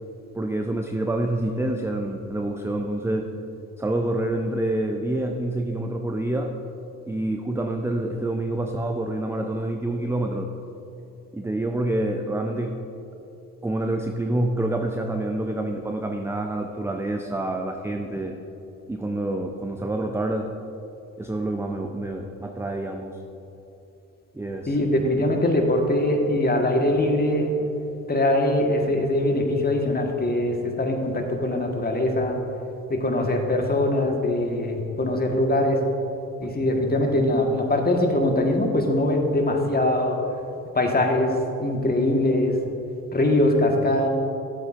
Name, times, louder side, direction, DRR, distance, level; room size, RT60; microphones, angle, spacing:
voice 1, 0.3-3.3 3.8-6.6 7.1-10.5 11.3-12.8 13.6-18.3 18.9-20.5 21.2-23.2 24.3-24.8 36.4-36.5, right 1 dB, 5° right, 3 dB, 0.5 m, -27 dB
voice 2, 24.7-27.5 28.1-32.4 32.9-35.8 36.4-40.2 40.7-41.3 41.6-42.6 43.1-44.1, left 1 dB, 20° left, 2 dB, 1.5 m, -22 dB
12.5 x 8.2 x 2.6 m, 2.9 s
hypercardioid pair, 50°, 42 cm